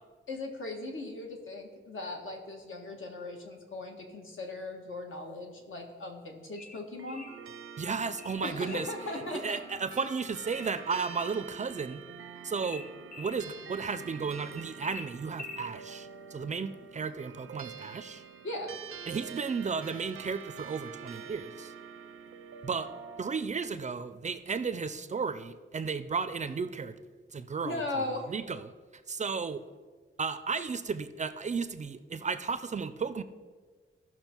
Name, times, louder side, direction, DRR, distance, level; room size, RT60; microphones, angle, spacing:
voice 1, 0.3-7.3 8.4-9.6 18.4-18.8 27.6-28.3, left 2 dB, 70° left, 2 dB, 1.6 m, -38 dB
sound 1, 6.6-7.4 8.2-9.0 10.5-11.4 12.6-13.4 14.8-15.7, left 4 dB, 40° left, 0.7 m, -45 dB
sound 2, 7.0-23.4, right 7 dB, 90° right, 0.6 m, -46 dB
voice 2, 7.8-8.9 9.3-12.0 12.4-12.9 13.2-18.2 19.1-21.7 22.6-22.9 23.2-27.0 27.3-29.6 30.2-33.2, right 5 dB, 35° right, 12 dB, 0.4 m, -34 dB
15.0 x 6.0 x 4.5 m, 1.5 s
wide cardioid pair, 170°, 21 cm